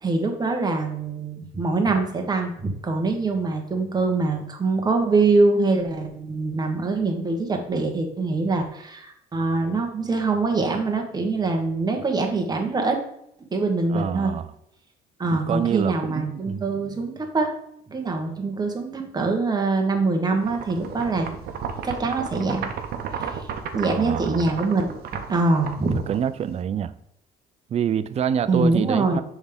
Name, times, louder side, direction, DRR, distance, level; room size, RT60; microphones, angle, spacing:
voice 1, 0.0-13.0 13.5-14.3 15.2-17.5 17.9-21.3 21.8-22.7 23.2-23.3 23.7-25.0 25.3-26.0 28.5-29.2, right 3 dB, 25° right, 1.3 m, -24 dB
voice 2, 13.9-14.5 15.3-16.7 23.9-24.5 25.8-26.9 27.7-29.2, right 8 dB, 40° right, 0.4 m, -27 dB
sound 1, 20.4-26.6, right 7 dB, 65° right, 0.8 m, -33 dB
6.2 x 3.6 x 5.2 m
cardioid pair, 110°, 17 cm